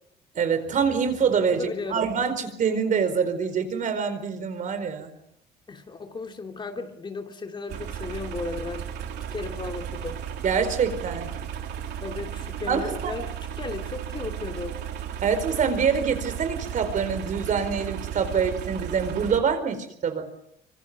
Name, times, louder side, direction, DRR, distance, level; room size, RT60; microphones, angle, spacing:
voice 1, 0.3-5.1 10.4-11.3 12.7-13.1 15.2-20.3, right 6 dB, 50° right, 10 dB, 4.6 m, -25 dB
voice 2, 1.5-2.1 5.7-8.9 9.3-10.2 12.0-13.3 13.6-14.8, left 3 dB, 30° left, 4 dB, 2.7 m, -35 dB
sound 1, 7.7-19.4, right 9 dB, 75° right, 3.4 m, -34 dB
26.0 x 25.0 x 6.2 m, 0.74 s
cardioid pair, 110°, 17 cm